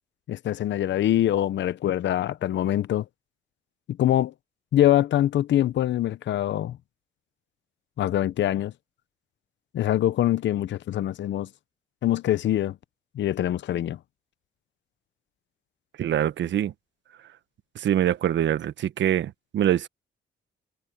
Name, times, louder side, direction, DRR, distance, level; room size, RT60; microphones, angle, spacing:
voice 1, 0.3-3.0 3.9-4.3 4.7-6.8 8.0-8.7 9.7-11.5 12.0-12.8 13.1-14.0, left 12 dB, 65° left, 0.9 m, -24 dB
voice 2, 16.0-16.7 17.7-19.9, right 11 dB, 65° right, 1.2 m, -24 dB
cardioid pair, 90°, 20 cm